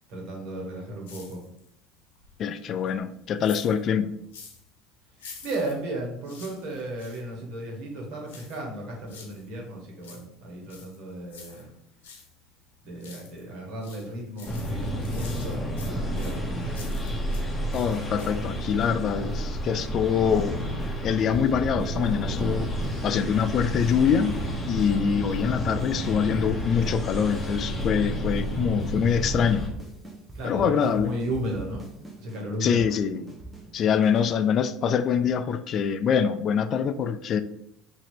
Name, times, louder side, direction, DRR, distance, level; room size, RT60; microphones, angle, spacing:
voice 1, 0.1-1.4 5.4-11.7 12.8-16.8 30.3-31.8 32.2-32.9, right 1 dB, 65° right, -1 dB, 1.4 m, -34 dB
sound 1, 1.1-1.8 2.1-4.7 5.1-7.3 8.3-9.5 9.8-12.3 12.7-13.5 13.8-17.5 17.7-18.5 18.8-18.9, left 5 dB, 85° left, 0.8 m, -48 dB
voice 2, 2.4-4.1 17.7-20.6 21.0-22.7 23.0-24.4 24.7-29.7 30.4-31.1 32.6-33.3 33.7-37.4, left 7 dB, 45° left, 12 dB, 0.3 m, -24 dB
sound 2, 14.5-29.7, equal, 15° left, 0.9 m, -30 dB
sound 3, 18.3-18.9 19.2-20.5 20.8-20.9 21.2-24.4 24.8-24.9 25.2-26.9 27.2-28.5 28.8-28.9 29.2-34.3, right 3 dB, 10° right, 1.0 m, -42 dB
2.9 x 2.7 x 4.4 m, 0.75 s
hypercardioid pair, 85°, 0 cm